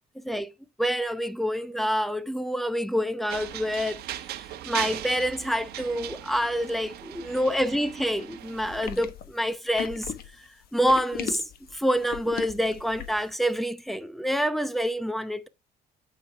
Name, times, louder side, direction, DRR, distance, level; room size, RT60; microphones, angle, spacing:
voice 1, 0.1-0.5 0.8-11.4 11.7-15.5, equal, ahead, 0.8 m, -27 dB
sound 1, 3.3-8.9, right 12 dB, 70° right, 1.2 m, -38 dB
sound 2, 8.6-13.3, left 9 dB, 60° left, 1.2 m, -38 dB
8.9 x 5.2 x 3.4 m
cardioid pair, 110°, 17 cm